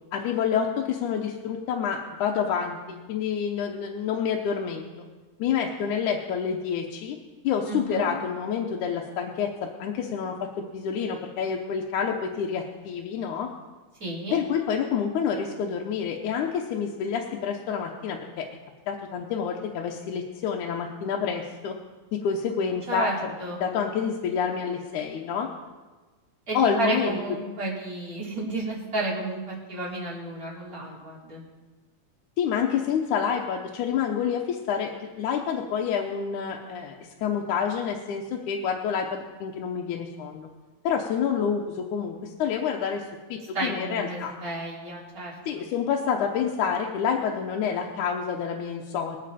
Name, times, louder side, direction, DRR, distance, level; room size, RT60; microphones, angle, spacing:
voice 1, 0.1-4.9 5.4-7.2 7.4-10.5 10.7-13.5 14.3-18.5 18.9-21.7 22.1-25.5 26.5-27.2 32.4-40.5 40.8-43.0 43.3-44.3 45.5-49.2, left 7 dB, 80° left, 1 dB, 2.4 m, -28 dB
voice 2, 7.7-8.1 14.0-14.4 22.9-23.1 23.4-23.6 26.5-31.4 43.5-45.3, right 2 dB, 25° right, -5 dB, 4.0 m, -32 dB
24.5 x 8.2 x 4.2 m, 1.3 s
omnidirectional pair, 3.4 m